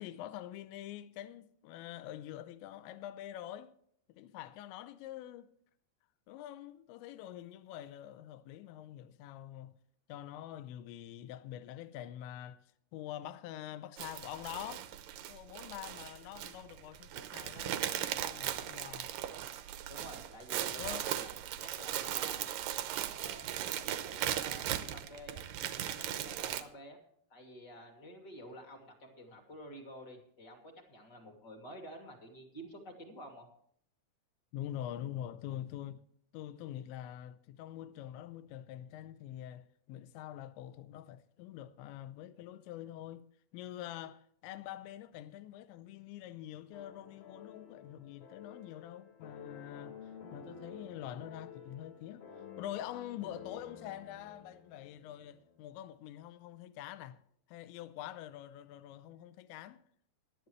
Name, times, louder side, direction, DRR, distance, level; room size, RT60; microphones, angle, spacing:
voice 1, 0.0-3.7 4.1-5.5 6.3-9.8 10.1-12.6 12.9-14.9 15.3-19.1 20.8-21.1 34.5-36.0 36.3-43.3 43.5-52.2 52.6-57.2 57.5-59.8, left 12 dB, 90° left, 3.0 m, -45 dB
sound 1, 14.0-26.6, right 11 dB, 90° right, 1.9 m, -38 dB
voice 2, 19.9-21.3 21.6-22.5 23.1-27.0 27.3-33.5, equal, 30° left, 2.3 m, -51 dB
sound 2, 46.7-55.7, left 6 dB, 70° left, 1.1 m, -52 dB
18.0 x 12.5 x 3.2 m
omnidirectional pair, 5.1 m